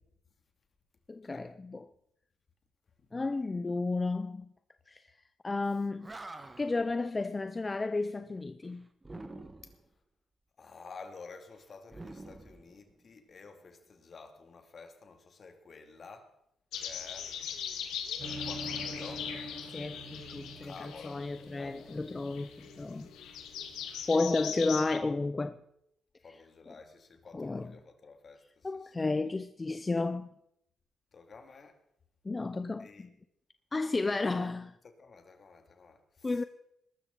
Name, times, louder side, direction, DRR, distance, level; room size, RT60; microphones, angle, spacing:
voice 1, 1.1-1.9 3.1-4.5 4.9-5.1 5.4-6.1 6.6-8.9 19.7-20.7 21.0-23.1 24.1-25.6 27.3-27.7 28.6-30.3 32.2-32.9 33.7-34.7 36.2-36.4, left 3 dB, 25° left, 0.7 m, -32 dB
Animal, 5.7-5.8 6.0-6.8 9.0-9.9 11.9-13.2, right 2 dB, 25° right, 1.5 m, -47 dB
voice 2, 10.6-16.4 16.7-17.4 18.4-19.4 20.6-21.8 24.0-24.1 24.4-24.8 26.2-29.1 31.1-31.8 32.8-33.1 34.8-36.4, left 4 dB, 50° left, 2.6 m, -51 dB
sound 1, 16.7-25.0, left 8 dB, 90° left, 1.8 m, -40 dB
sound 2, 18.2-23.8, right 1 dB, 45° right, 6.9 m, -46 dB
21.0 x 12.5 x 4.0 m
cardioid pair, 70°, 0 cm